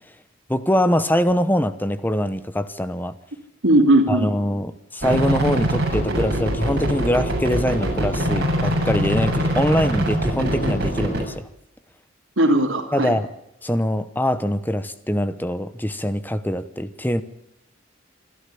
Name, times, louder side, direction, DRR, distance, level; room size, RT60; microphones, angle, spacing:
voice 1, 0.5-3.2 4.1-11.5 12.9-13.3 13.6-17.2, equal, 10° left, 13 dB, 1.0 m, -23 dB
voice 2, 3.6-4.3 12.4-13.1, right 1 dB, 75° right, 0 dB, 2.8 m, -17 dB
sound 1, 5.0-11.2, right 1 dB, 50° right, 7.3 m, -23 dB
27.0 x 12.0 x 8.5 m, 0.79 s
head